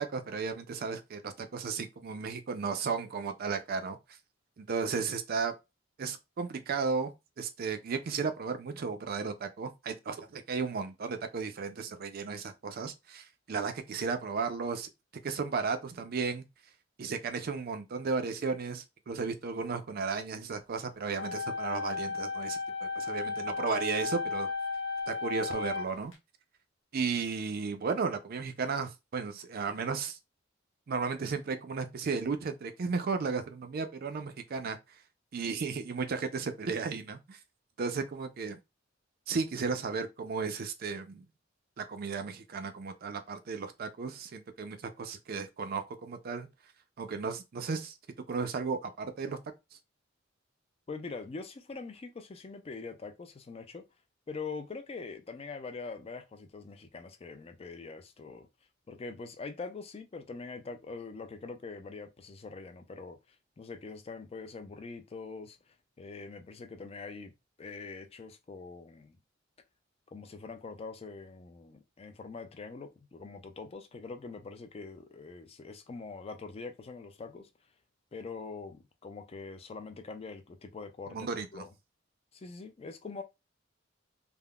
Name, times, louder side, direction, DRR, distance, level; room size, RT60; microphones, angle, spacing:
voice 1, 0.0-4.0 4.6-5.5 6.0-14.9 15.2-16.4 17.0-24.5 25.1-26.1 26.9-30.2 30.9-35.0 35.3-37.4 37.8-38.6 39.3-41.3 41.8-46.5 47.0-48.0 48.3-49.4 81.1-81.7, right 5 dB, 50° right, 0.4 m, -34 dB
sound 1, 21.2-26.1, left 4 dB, 75° left, 1.0 m, -34 dB
voice 2, 50.9-53.8 54.3-58.5 58.9-63.2 63.6-67.3 67.6-69.2 70.1-77.5 78.1-81.7 82.3-83.2, left 4 dB, 30° left, 0.4 m, -43 dB
3.5 x 2.1 x 2.3 m
head